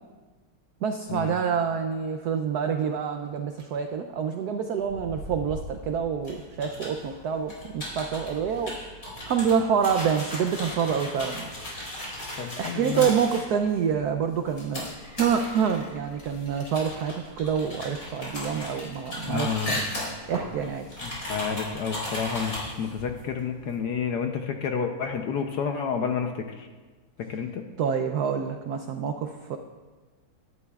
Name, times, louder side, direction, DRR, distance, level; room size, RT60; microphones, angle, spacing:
voice 1, 0.8-8.7 9.3-11.5 12.3-14.9 15.2-19.8 20.3-20.9 27.8-29.6, right 7 dB, 85° right, 6 dB, 0.8 m, -27 dB
sound 1, 3.3-3.6 4.7-9.1, right 1 dB, 55° right, 1.7 m, -44 dB
sound 2, 6.2-23.8, left 1 dB, 40° left, 4.4 m, -39 dB
sound 3, 9.8-13.8 14.5-22.0, left 1 dB, 25° left, 2.0 m, -40 dB
voice 2, 12.4-13.1 19.3-19.8 21.0-26.3 26.6-26.7 27.3-27.6, left 6 dB, 65° left, 4 dB, 1.1 m, -30 dB
17.0 x 11.0 x 2.3 m, 1.4 s
omnidirectional pair, 2.3 m